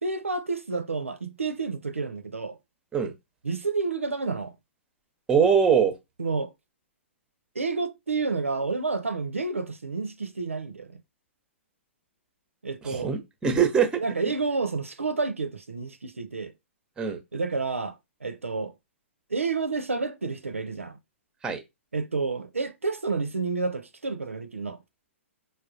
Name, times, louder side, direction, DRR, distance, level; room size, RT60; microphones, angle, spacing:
voice 1, 0.0-2.6 3.4-4.5 6.2-6.5 7.5-11.0 12.6-13.1 14.0-16.5 17.3-18.0 18.2-18.7 19.3-21.0 21.9-24.8, right 4 dB, 80° right, 0.5 m, -30 dB
voice 2, 5.3-5.9 12.8-14.0 17.0-17.2 21.4-21.6, right 7 dB, 10° right, 0.6 m, -22 dB
4.7 x 2.2 x 2.5 m
figure-of-eight pair, 110°, 7 cm